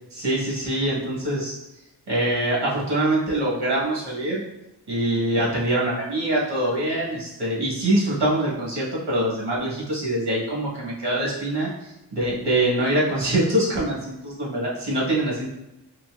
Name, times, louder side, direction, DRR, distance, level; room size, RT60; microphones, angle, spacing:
voice 1, 0.1-1.5 2.1-4.4 4.9-11.7 12.1-15.5, right 1 dB, 70° right, -5 dB, 1.4 m, -24 dB
3.9 x 2.8 x 2.4 m, 0.94 s
wide cardioid pair, 50°, 42 cm